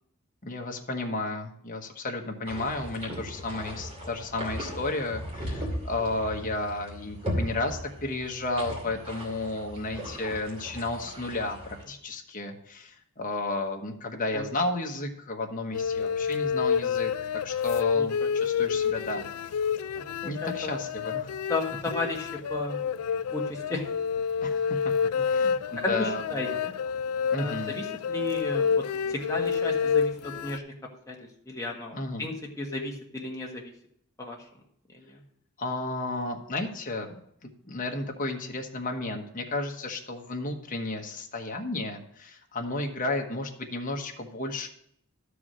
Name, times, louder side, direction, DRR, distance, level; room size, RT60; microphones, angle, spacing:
voice 1, 0.4-17.1 17.4-19.3 20.2-21.3 24.4-24.8 25.3-26.6 27.3-27.8 31.9-32.3 35.6-37.2 37.6-44.7, left 2 dB, 40° left, 2 dB, 1.2 m, -33 dB
sound 1, 2.4-11.8, equal, 25° right, 2.5 m, -37 dB
sound 2, 15.7-30.6, left 6 dB, 85° left, 0.4 m, -28 dB
voice 2, 17.9-18.3 19.9-20.7 21.5-22.8 23.3-23.9 25.1-25.4 25.8-26.7 27.4-28.8 29.1-30.6 31.1-31.2 31.4-33.7 34.2-34.4 34.9-35.2, left 2 dB, 15° left, -1 dB, 1.6 m, -34 dB
12.0 x 4.9 x 6.2 m, 0.71 s
head